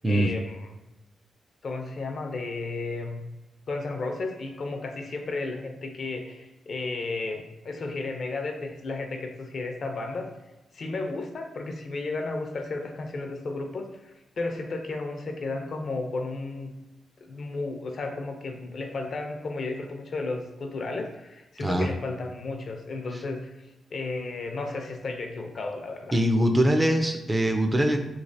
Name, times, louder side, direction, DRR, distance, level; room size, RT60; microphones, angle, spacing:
voice 1, 0.1-0.8 1.6-3.2 3.7-10.3 10.7-16.7 17.2-23.5 23.9-26.2, left 3 dB, 55° left, 4 dB, 0.5 m, -33 dB
voice 2, 21.6-21.9 26.1-28.0, right 1 dB, 20° right, 5 dB, 0.3 m, -22 dB
3.1 x 3.1 x 2.6 m, 1.0 s
cardioid pair, 110°, 0 cm